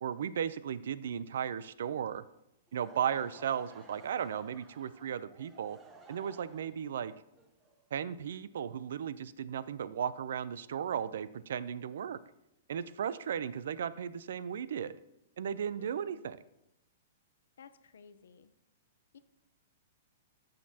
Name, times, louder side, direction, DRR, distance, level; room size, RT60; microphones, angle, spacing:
voice 1, 0.0-2.2 2.7-5.8 6.1-7.1 7.9-12.2 12.7-15.0 15.4-16.4, right 8 dB, 70° right, 17 dB, 0.4 m, -35 dB
Laughter / Crowd, 2.7-8.6, right 3 dB, 15° right, 0.8 m, -57 dB
voice 2, 15.8-16.2 17.6-18.5 19.1-19.2, left 6 dB, 90° left, 12 dB, 0.6 m, -55 dB
13.5 x 6.5 x 2.8 m, 0.87 s
hypercardioid pair, 165°, 0 cm